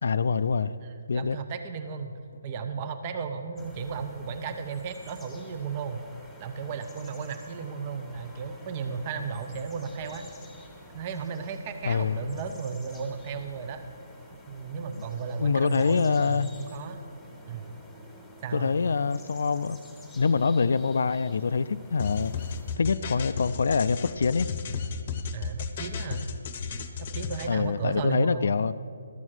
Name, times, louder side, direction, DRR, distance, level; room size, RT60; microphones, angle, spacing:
voice 1, 0.0-0.7 1.1-1.4 11.8-12.2 15.4-16.5 18.5-19.8 20.2-22.3 22.8-24.5 27.5-28.7, left 5 dB, 65° left, 13 dB, 0.3 m, -25 dB
voice 2, 0.8-6.0 6.4-10.2 10.9-13.8 14.5-17.0 17.5-17.7 18.4-18.7 25.3-26.3 27.0-28.5, right 5 dB, 30° right, 8 dB, 0.7 m, -35 dB
sound 1, 3.6-22.8, left 1 dB, 5° left, 1.6 m, -49 dB
sound 2, 22.0-27.5, left 5 dB, 40° left, 0.8 m, -34 dB
12.5 x 7.2 x 6.3 m, 2.4 s
hypercardioid pair, 155°, 0 cm